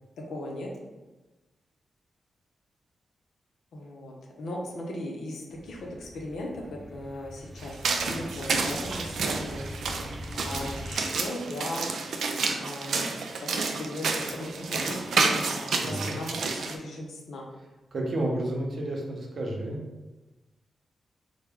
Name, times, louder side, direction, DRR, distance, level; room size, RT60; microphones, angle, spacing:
voice 1, 0.2-0.7 3.7-9.9 10.3-11.9 12.6-13.1 13.5-17.5, left 1 dB, 80° left, -1 dB, 0.6 m, -38 dB
sound 1, 5.5-10.9, equal, 25° right, 0.5 m, -42 dB
sound 2, 7.6-16.8, right 4 dB, 80° right, 0.3 m, -30 dB
voice 2, 15.8-16.2 17.9-19.8, right 1 dB, 60° right, -1 dB, 0.7 m, -31 dB
3.4 x 2.1 x 3.5 m, 1.1 s
cardioid pair, 55°, 0 cm